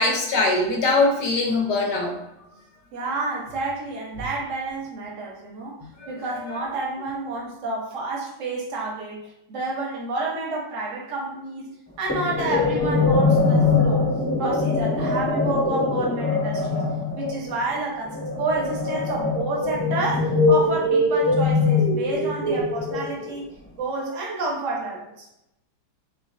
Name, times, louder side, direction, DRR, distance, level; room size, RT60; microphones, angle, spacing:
voice 1, 0.0-2.2 6.0-6.5, left 2 dB, 65° left, 1 dB, 1.2 m, -22 dB
voice 2, 2.9-9.2 9.5-14.1 14.4-16.8 17.2-23.5 23.8-25.3, right 3 dB, 50° right, -2 dB, 1.1 m, -30 dB
sound 1, 12.1-23.4, left 3 dB, 10° left, 0.7 m, -22 dB
4.0 x 3.1 x 2.6 m, 0.85 s
omnidirectional pair, 2.1 m